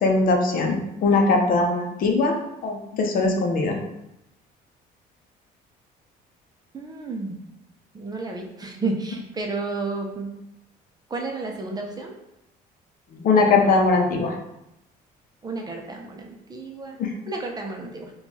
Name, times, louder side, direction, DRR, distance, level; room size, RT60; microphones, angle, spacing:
voice 1, 0.0-2.3 2.6-3.8 13.2-14.3 17.0-17.1, left 3 dB, 55° left, 2 dB, 0.6 m, -20 dB
voice 2, 6.7-7.4 7.9-10.3 11.1-12.2 15.4-18.1, right 3 dB, 25° right, 1 dB, 0.5 m, -32 dB
4.3 x 2.3 x 2.8 m, 0.87 s
cardioid pair, 110°, 17 cm